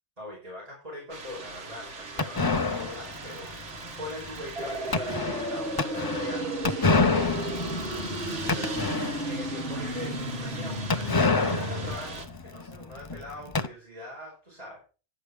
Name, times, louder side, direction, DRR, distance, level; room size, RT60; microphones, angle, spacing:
voice 1, 0.2-3.5 4.0-14.8, left 1 dB, 35° right, -5 dB, 5.2 m, -42 dB
sound 1, 1.1-12.3, right 3 dB, 85° right, 1.9 m, -40 dB
sound 2, 2.2-9.5 9.8-9.9 10.1-10.2 10.9-13.7, left 3 dB, 25° left, 0.5 m, -28 dB
sound 3, 4.6-12.0, equal, 60° right, 4.1 m, -34 dB
11.0 x 8.4 x 4.8 m, 0.35 s
omnidirectional pair, 1.1 m